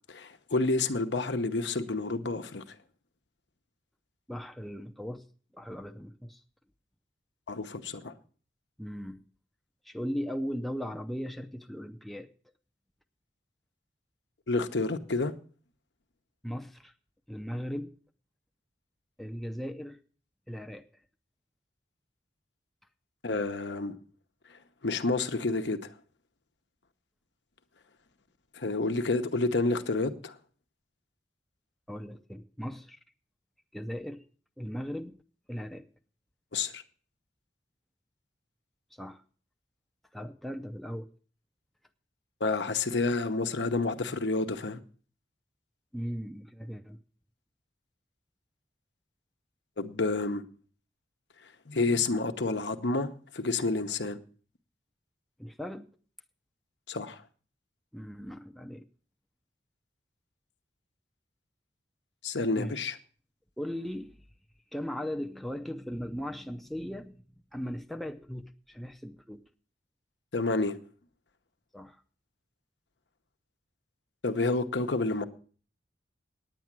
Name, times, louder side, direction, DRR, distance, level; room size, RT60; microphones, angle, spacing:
voice 1, 0.1-2.8 7.5-8.1 14.5-15.3 23.2-23.9 24.8-25.9 28.5-30.4 36.5-36.8 42.4-44.8 49.8-50.4 51.7-54.2 56.9-57.2 62.2-63.0 70.3-70.8 74.2-75.2, left 3 dB, 75° left, 1.0 m, -29 dB
voice 2, 4.3-5.2 5.5-6.4 8.8-9.3 9.8-12.3 16.4-16.9 17.3-17.9 19.2-20.0 20.5-20.9 31.9-33.0 33.7-34.2 34.6-35.2 35.5-35.9 38.9-39.2 40.1-41.1 45.9-47.0 55.4-55.9 57.9-58.9 62.6-62.8 63.6-64.2 64.7-67.2 67.5-69.4 71.7-72.0, equal, ahead, 0.5 m, -38 dB
9.5 x 9.3 x 7.4 m
head